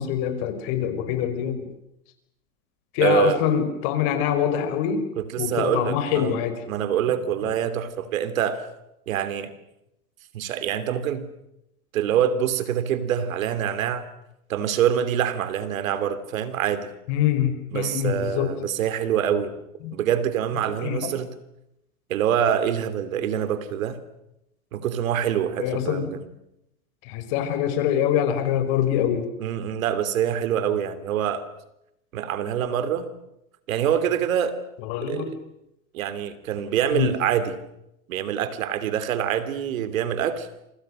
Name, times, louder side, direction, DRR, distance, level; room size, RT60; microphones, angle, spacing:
voice 1, 0.0-1.7 2.9-5.0 5.4-6.6 17.1-18.5 19.8-19.9 20.8-21.1 25.6-26.2 27.0-29.3 34.8-35.3 36.9-37.1, left 9 dB, 50° left, 9 dB, 5.3 m, -24 dB
voice 2, 3.0-3.4 5.2-6.3 6.7-8.6 9.1-9.5 10.3-11.2 11.9-14.0 14.5-16.9 17.7-19.5 19.9-21.3 22.1-24.0 24.7-26.2 29.4-31.4 32.1-33.1 33.7-34.6 35.0-35.3 35.9-37.6 38.1-40.5, right 9 dB, 70° right, 13 dB, 3.0 m, -25 dB
28.0 x 25.5 x 6.5 m, 0.83 s
hypercardioid pair, 105°, 42 cm